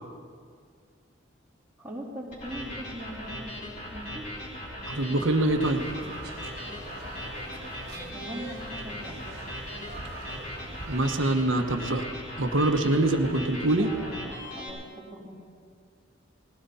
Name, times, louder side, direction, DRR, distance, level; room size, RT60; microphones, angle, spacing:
voice 1, 1.8-3.5 3.9-4.2 7.4-9.2 13.8-15.4, right 1 dB, 10° right, -13 dB, 3.3 m, -41 dB
sound 1, 2.3-14.7, left 1 dB, 40° left, 4.8 m, -39 dB
voice 2, 4.9-5.8 10.9-12.0 12.4-13.9, right 1 dB, 75° right, 5 dB, 1.2 m, -24 dB
sound 2, 5.6-11.1, right 2 dB, 55° right, 1.8 m, -43 dB
20.0 x 16.5 x 4.2 m, 2.1 s
head